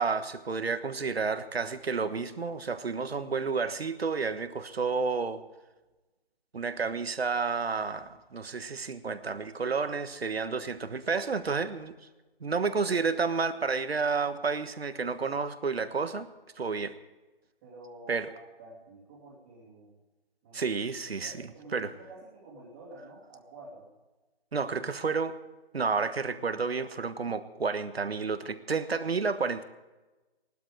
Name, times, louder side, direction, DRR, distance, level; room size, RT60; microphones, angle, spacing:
voice 1, 0.0-5.4 6.5-11.9 12.4-16.3 16.6-16.9 18.1-18.3 20.5-21.3 21.7-21.9 24.5-25.3 25.7-29.6, right 4 dB, 75° right, 11 dB, 1.4 m, -30 dB
voice 2, 17.6-20.0 20.4-20.7 21.1-23.9, right 2 dB, 15° right, -5 dB, 2.4 m, -49 dB
19.5 x 12.0 x 4.9 m, 1.1 s
hypercardioid pair, 170°, 31 cm